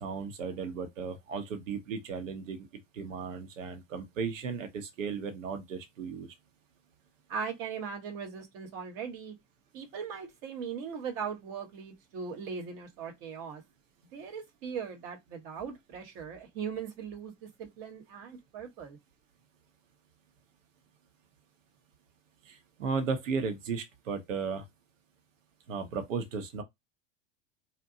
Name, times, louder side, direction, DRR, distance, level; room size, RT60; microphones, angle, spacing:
voice 1, 0.0-2.7 2.9-6.3 22.5-24.6 25.7-26.6, right 5 dB, 75° right, 0.8 m, -35 dB
voice 2, 7.3-9.3 9.7-13.6 14.1-19.0, right 6 dB, 50° right, 1.1 m, -39 dB
2.7 x 2.1 x 2.6 m
hypercardioid pair, 85°, 38 cm